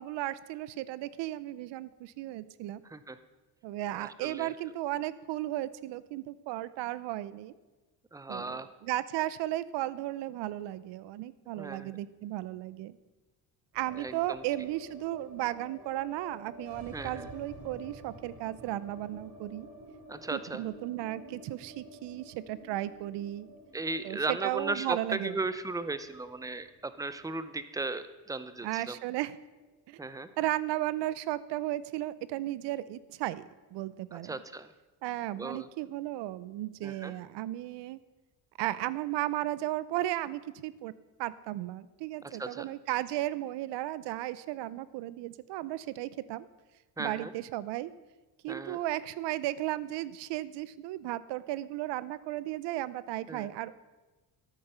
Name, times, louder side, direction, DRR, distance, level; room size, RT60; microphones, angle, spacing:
voice 1, 0.0-2.8 3.6-7.5 8.3-13.0 13.7-19.7 20.3-23.5 24.0-25.4 28.6-29.4 29.9-30.0 30.4-33.4 33.7-34.4 35.0-38.0 38.6-40.9 41.2-46.5 47.0-47.9 48.4-53.7, right 15 dB, 75° right, 18 dB, 0.7 m, -35 dB
voice 2, 2.8-3.2 3.9-4.5 8.1-8.7 11.6-11.9 14.0-14.4 16.9-17.3 20.1-20.6 23.7-29.0 30.0-30.3 34.1-34.7 35.4-35.7 36.8-37.1 42.2-42.7 47.0-47.3 48.5-48.8 53.3-53.5, right 3 dB, 10° right, 13 dB, 0.5 m, -36 dB
sound 1, 13.7-29.9 30.1-30.2 30.5-31.2, right 1 dB, 50° right, 2.3 m, -50 dB
12.5 x 8.9 x 5.6 m, 1.2 s
cardioid pair, 115°, 42 cm